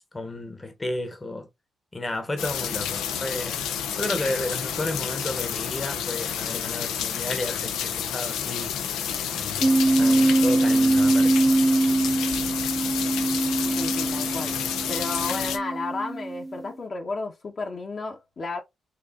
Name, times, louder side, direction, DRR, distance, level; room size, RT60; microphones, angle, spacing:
voice 1, 0.1-1.5 1.9-3.6 3.9-8.7 9.3-11.4, left 2 dB, 25° left, 1.0 m, -32 dB
sound 1, 2.4-15.6, left 8 dB, 90° left, 0.5 m, -30 dB
sound 2, 9.6-16.6, right 2 dB, 15° right, 0.7 m, -23 dB
voice 2, 13.8-14.6 14.9-18.6, left 3 dB, 50° left, 1.1 m, -32 dB
4.8 x 2.7 x 2.5 m
supercardioid pair, 65°, 0 cm